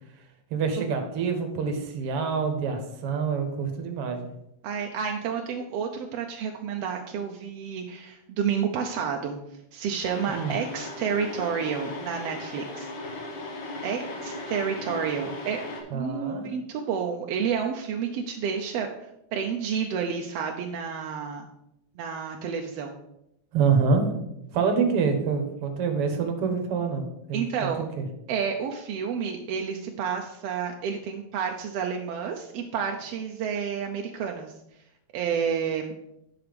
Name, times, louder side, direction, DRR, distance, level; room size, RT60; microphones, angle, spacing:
voice 1, 0.5-4.3 10.3-10.5 15.9-16.4 23.5-24.0 24.5-28.1, right 5 dB, 55° right, 5 dB, 1.8 m, -26 dB
voice 2, 4.6-9.4 9.7-12.9 13.8-15.6 15.9-18.9 19.3-21.5 22.0-23.0 27.3-27.8 28.3-34.5 35.1-35.9, right 7 dB, 75° right, 2 dB, 1.5 m, -30 dB
sound 1, 10.0-15.8, left 2 dB, 70° left, 2.9 m, -37 dB
9.9 x 5.8 x 5.1 m, 0.82 s
omnidirectional pair, 3.5 m